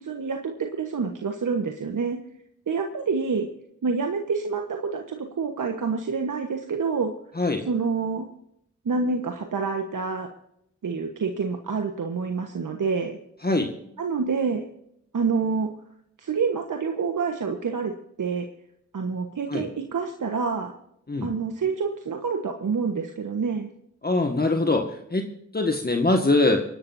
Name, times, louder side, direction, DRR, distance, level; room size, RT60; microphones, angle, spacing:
voice 1, 0.0-2.2 2.7-3.5 3.8-7.1 7.6-8.3 8.8-10.3 10.8-13.2 14.0-14.6 15.1-15.7 16.2-17.9 18.2-18.5 18.9-20.7 21.2-23.7, right 5 dB, 80° right, 4 dB, 1.3 m, -27 dB
voice 2, 24.0-26.6, left 2 dB, 30° left, 3 dB, 1.7 m, -23 dB
26.5 x 11.5 x 2.7 m, 0.77 s
cardioid pair, 45°, 31 cm